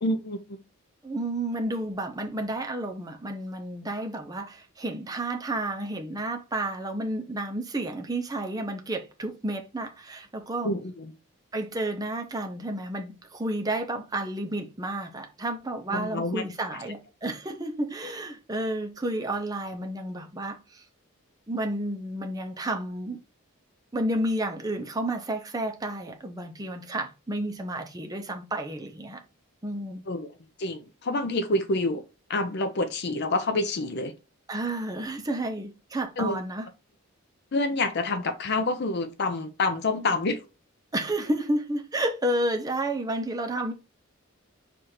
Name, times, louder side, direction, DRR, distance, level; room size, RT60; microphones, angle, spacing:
voice 1, 0.0-0.6 10.6-11.1 15.9-16.4 16.7-16.8 30.1-30.3 30.6-32.0 32.3-34.1 36.2-36.4 37.5-40.4, left 2 dB, 50° left, 0.5 m, -27 dB
voice 2, 1.0-10.7 11.5-20.8 21.5-23.2 23.9-29.2 29.6-30.0 34.5-36.6 40.9-43.7, right 1 dB, 15° right, 0.6 m, -31 dB
4.8 x 2.5 x 4.2 m
head